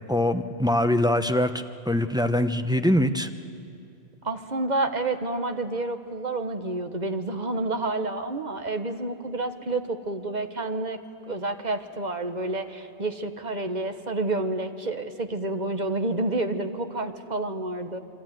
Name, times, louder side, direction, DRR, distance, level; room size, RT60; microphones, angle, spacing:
voice 1, 0.1-3.3, left 1 dB, 5° right, 8 dB, 0.7 m, -23 dB
voice 2, 4.2-11.0 11.3-18.0, right 2 dB, 40° right, 8 dB, 1.3 m, -29 dB
27.5 x 23.5 x 9.2 m, 2.5 s
omnidirectional pair, 1.2 m